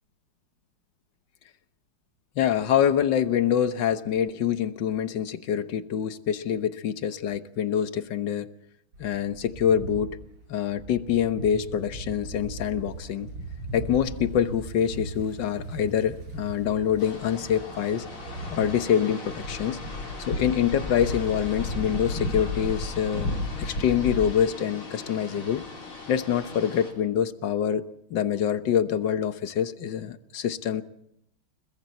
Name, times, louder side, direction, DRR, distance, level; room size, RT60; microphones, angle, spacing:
voice 1, 2.4-8.5 9.0-10.2 10.5-13.3 13.7-18.1 18.5-19.8 20.3-23.3 23.6-25.6 26.1-27.8 28.1-30.8, left 9 dB, 60° left, 11 dB, 1.6 m, -25 dB
sound 1, 8.9-18.7, right 2 dB, 70° right, 7.5 m, -39 dB
sound 2, 17.0-26.9, left 2 dB, 90° left, 5.1 m, -34 dB
29.5 x 21.0 x 4.3 m, 0.79 s
omnidirectional pair, 2.3 m